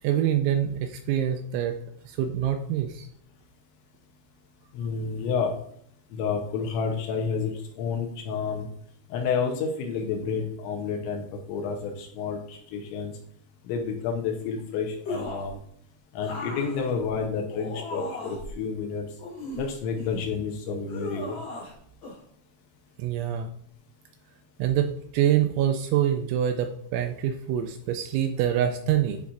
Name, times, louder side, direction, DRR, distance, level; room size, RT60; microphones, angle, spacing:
voice 1, 0.0-1.8 2.1-3.1 23.0-23.5 24.6-29.2, right 10 dB, 85° right, 6 dB, 2.7 m, -25 dB
voice 2, 4.7-5.5 6.1-7.5 7.8-8.7 9.1-13.1 13.7-15.6 16.1-19.1 19.6-21.4, left 5 dB, 80° left, 2 dB, 3.0 m, -30 dB
sound 1, 15.0-15.6 16.2-18.5 19.2-20.3 20.9-21.7 22.0-22.2, left 1 dB, 55° left, 1.4 m, -37 dB
10.5 x 4.2 x 2.5 m, 0.67 s
omnidirectional pair, 5.8 m